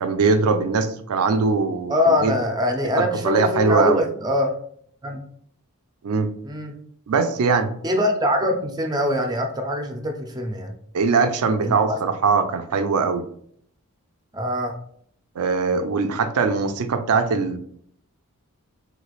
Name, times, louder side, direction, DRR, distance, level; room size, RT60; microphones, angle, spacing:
voice 1, 0.0-2.3 3.0-4.0 6.0-6.3 7.1-7.7 10.9-13.3 15.4-17.6, right 4 dB, 85° right, 9 dB, 0.4 m, -21 dB
voice 2, 1.9-4.5 5.0-5.2 6.4-6.7 7.8-10.7 11.6-11.8 14.3-14.8, left 1 dB, 20° right, 4 dB, 0.5 m, -23 dB
3.3 x 3.1 x 2.3 m, 0.64 s
head